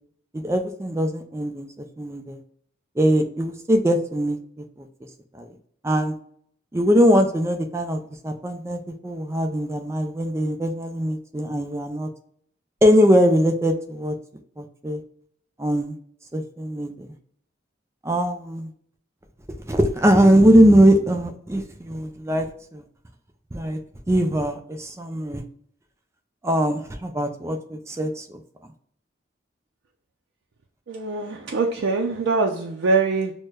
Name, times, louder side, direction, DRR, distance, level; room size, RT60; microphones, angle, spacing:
voice 1, 0.3-2.4 3.0-4.6 5.3-5.5 5.8-6.2 6.7-12.1 12.8-14.2 14.6-15.0 15.6-16.0 16.3-17.1 18.0-18.7 19.6-22.8 23.5-23.8 24.1-25.4 26.4-28.4, equal, 15° right, 6 dB, 0.4 m, -21 dB
voice 2, 30.9-33.3, right 3 dB, 80° right, 0 dB, 0.4 m, -23 dB
6.1 x 2.1 x 2.2 m, 0.63 s
head